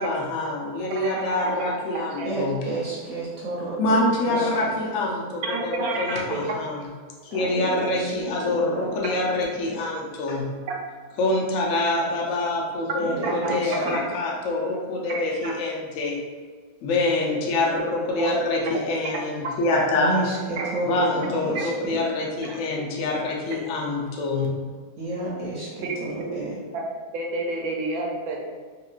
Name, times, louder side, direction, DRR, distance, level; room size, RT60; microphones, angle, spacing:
voice 1, 0.0-2.6 3.8-5.7 6.0-6.8 7.3-10.5 11.2-16.2 16.8-20.1 20.9-24.5, left 2 dB, 70° left, -2 dB, 0.9 m, -25 dB
voice 2, 0.8-1.6 2.2-2.3 5.4-6.4 13.2-13.6 13.9-14.0 15.1-15.5 18.2-18.7 20.6-20.7 21.5-21.6 22.5-22.6 25.8-26.3 26.7-26.9 27.1-28.5, right 3 dB, 90° right, 0 dB, 1.1 m, -30 dB
voice 3, 2.2-4.8 7.3-9.0 13.0-14.0 19.9-22.0 25.0-26.6, right 2 dB, 70° right, -6 dB, 0.9 m, -31 dB
2.8 x 2.8 x 2.4 m, 1.5 s
omnidirectional pair, 1.5 m